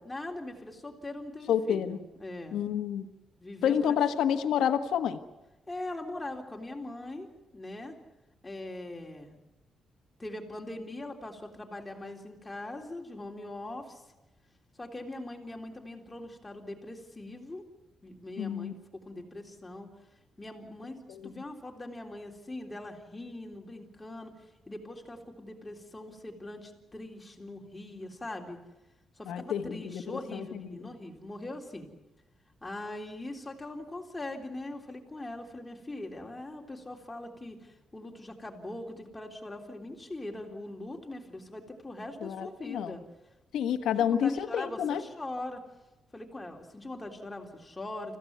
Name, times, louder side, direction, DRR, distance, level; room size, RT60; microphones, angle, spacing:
voice 1, 0.1-2.6 3.4-4.0 5.7-7.3 7.5-8.0 8.4-9.4 10.2-14.0 14.8-17.6 18.0-19.9 20.4-28.6 29.2-31.9 32.6-43.0 44.0-45.6 46.1-48.2, left 1 dB, 15° left, 1 dB, 3.7 m, -41 dB
voice 2, 1.5-2.0 2.5-3.1 3.6-5.2 18.4-18.7 21.1-21.3 29.3-30.7 42.2-43.0 43.5-45.0, left 8 dB, 85° left, 7 dB, 1.5 m, -29 dB
26.0 x 15.5 x 9.5 m, 1.0 s
cardioid pair, 110°, 0 cm